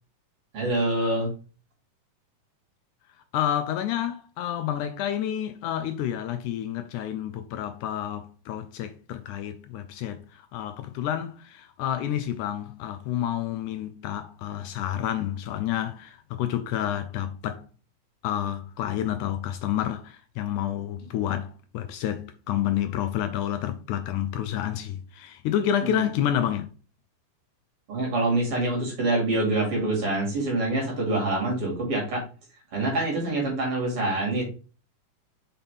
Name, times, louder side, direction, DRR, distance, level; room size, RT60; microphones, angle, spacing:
voice 1, 0.5-1.3 25.9-26.0 27.9-32.2 32.7-34.4, right 2 dB, 45° right, 3.1 m, -25 dB
voice 2, 3.3-17.7 18.2-26.7, left 11 dB, 80° left, 1.9 m, -29 dB
5.8 x 5.7 x 3.5 m
omnidirectional pair, 3.7 m